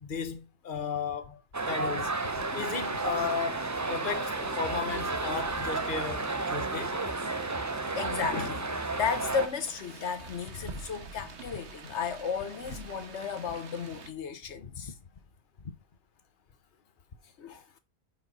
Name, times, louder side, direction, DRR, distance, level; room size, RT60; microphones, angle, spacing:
voice 1, 0.0-1.4 1.7-7.0 10.6-10.8 14.6-14.7, left 6 dB, 50° left, 1.2 m, -35 dB
sound 1, 1.5-9.5, right 3 dB, 20° right, 0.5 m, -32 dB
sound 2, 2.1-14.1, right 4 dB, 75° right, 1.4 m, -47 dB
voice 2, 7.9-14.9 17.4-17.6, left 6 dB, 80° left, 1.3 m, -34 dB
9.0 x 6.4 x 4.2 m
omnidirectional pair, 1.2 m